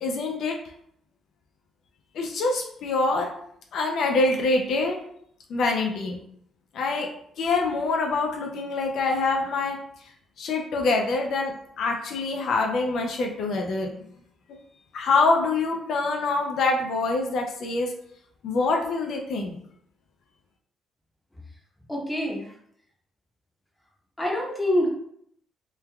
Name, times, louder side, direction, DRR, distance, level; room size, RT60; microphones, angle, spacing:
voice 1, 0.0-0.6 2.1-3.3 3.7-5.0 5.5-6.2 6.7-7.1 7.4-9.8 10.4-13.9 14.9-17.9 18.4-19.6, left 3 dB, 70° left, 2 dB, 0.4 m, -25 dB
voice 2, 21.9-22.5 24.2-24.9, left 1 dB, 10° left, -1 dB, 0.7 m, -25 dB
3.1 x 2.3 x 2.2 m, 0.68 s
cardioid pair, 90°, 0 cm